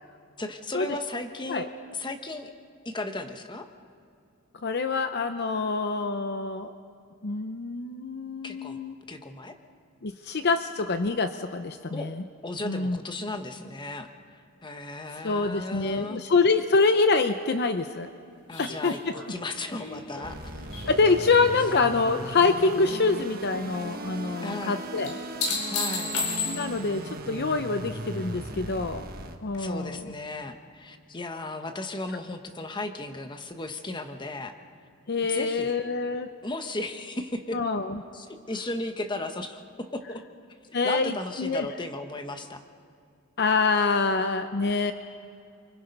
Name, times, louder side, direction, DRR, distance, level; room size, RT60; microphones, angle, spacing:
voice 1, 0.4-2.5 2.8-3.7 8.4-8.8 9.1-9.6 11.9-12.1 12.4-14.1 14.6-16.2 18.5-20.7 24.4-24.8 25.7-26.2 29.6-34.6 35.3-35.8 36.4-37.6 38.1-40.2 40.8-42.6, left 2 dB, 20° left, 7 dB, 1.1 m, -35 dB
voice 2, 4.6-6.7 7.2-8.9 10.0-12.2 12.6-13.0 15.2-18.1 18.6-19.1 20.9-25.2 26.5-29.1 29.4-30.1 35.1-36.3 37.5-38.0 40.7-41.7 43.4-44.9, left 4 dB, 50° left, 9 dB, 0.7 m, -25 dB
sound 1, 18.5-22.0 22.3-23.0 25.0-26.9 29.5-29.6, left 4 dB, 85° left, 4.0 m, -33 dB
sound 2, 20.2-29.3, right 1 dB, 45° right, 1.4 m, -38 dB
29.5 x 24.0 x 5.4 m, 2.5 s
head